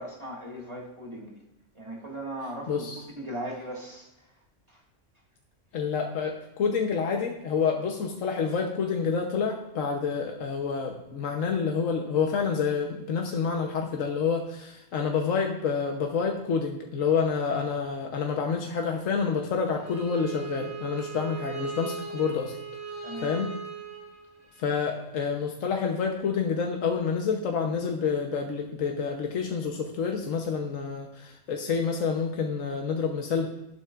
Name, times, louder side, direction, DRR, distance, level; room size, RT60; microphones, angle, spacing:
voice 1, 0.0-1.4 1.7-2.9 3.2-4.3 4.7-4.8 23.0-23.3, right 1 dB, 25° right, -2 dB, 1.8 m, -38 dB
voice 2, 2.7-3.0 5.7-22.6 23.2-23.5 24.6-33.5, left 5 dB, 85° left, 2 dB, 1.3 m, -28 dB
Bowed string instrument, 19.7-24.7, right 5 dB, 85° right, 4.5 m, -38 dB
12.5 x 11.0 x 2.5 m, 0.88 s
omnidirectional pair, 1.3 m